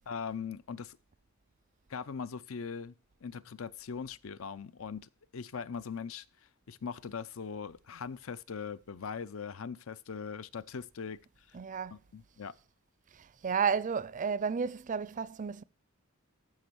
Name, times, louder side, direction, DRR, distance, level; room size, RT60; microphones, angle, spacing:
voice 1, 0.1-1.0 1.9-2.9 3.2-6.3 6.7-11.2 11.5-11.6 11.9-12.5, left 6 dB, 70° left, 0.5 m, -40 dB
voice 2, 11.5-12.0 13.1-15.6, right 6 dB, 40° right, 0.4 m, -32 dB
13.5 x 5.3 x 6.1 m
head